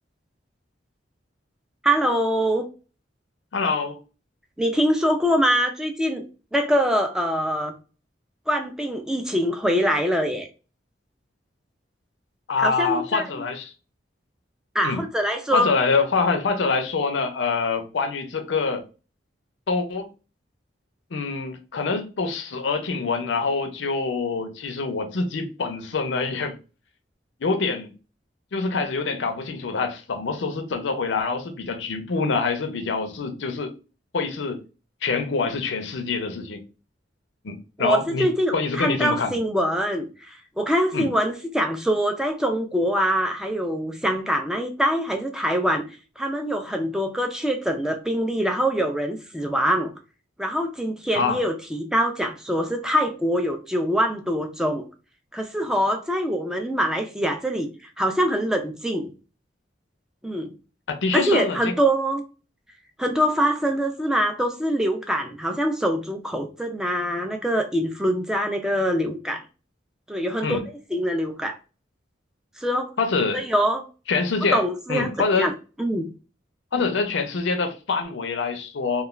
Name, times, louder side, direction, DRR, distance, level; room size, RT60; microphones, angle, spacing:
voice 1, 1.8-2.7 4.6-6.3 6.5-7.8 8.5-10.5 12.6-13.3 14.7-15.7 37.8-45.8 46.2-49.9 50.4-54.8 55.3-57.7 58.0-59.1 60.2-60.5 61.1-62.2 63.0-69.4 70.1-70.6 70.9-71.6 72.6-72.9 73.3-73.8 74.5-75.1 75.4-75.5 75.8-76.1, equal, 5° right, 0.3 m, -24 dB
voice 2, 3.5-4.0 12.5-13.7 14.8-15.0 15.5-18.8 19.7-20.1 21.1-26.6 27.4-27.9 28.5-33.7 34.1-34.6 35.0-36.6 37.4-38.3 38.5-39.4 40.9-41.1 51.1-51.4 60.9-61.7 70.4-70.6 73.0-73.5 74.1-74.6 74.9-75.5 76.7-79.0, left 4 dB, 85° left, 0.5 m, -25 dB
2.3 x 2.2 x 3.1 m
head